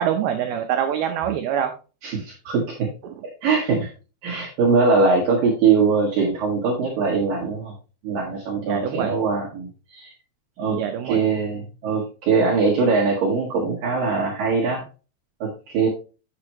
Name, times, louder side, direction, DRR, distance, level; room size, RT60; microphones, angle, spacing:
voice 1, 0.0-1.7 8.6-9.1 10.8-11.2, right 9 dB, 85° right, 5 dB, 2.2 m, -24 dB
voice 2, 2.0-2.9 3.4-3.9 4.2-7.7 8.0-10.1 10.6-10.8 11.0-14.8 15.4-15.9, right 4 dB, 60° right, -3 dB, 2.7 m, -21 dB
8.6 x 7.7 x 3.0 m, 0.33 s
omnidirectional pair, 5.5 m